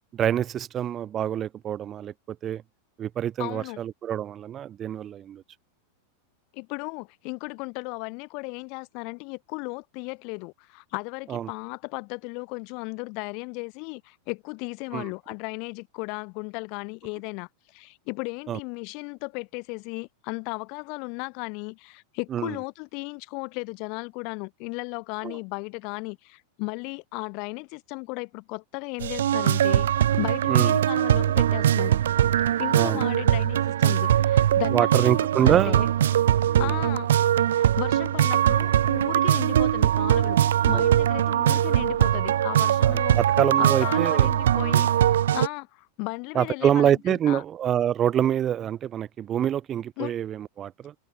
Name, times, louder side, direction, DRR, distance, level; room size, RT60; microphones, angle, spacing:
voice 1, 0.1-2.6 3.0-5.4 11.3-11.5 14.9-15.1 18.5-18.6 22.3-22.6 25.2-25.4 30.5-30.8 32.7-33.1 34.7-35.8 36.5-36.7 40.7-40.8 42.8-44.3 46.3-50.9, right 10 dB, 25° right, 1.5 m, -26 dB
voice 2, 3.4-3.8 6.5-32.0 32.6-35.9 36.6-37.1 37.5-40.4 40.7-43.2 43.6-44.9 45.3-47.4 50.0-50.1, left 33 dB, 45° left, 2.7 m, -35 dB
sound 1, 29.0-45.5, right 11 dB, 60° right, 0.7 m, -21 dB
figure-of-eight pair, 90°, 0 cm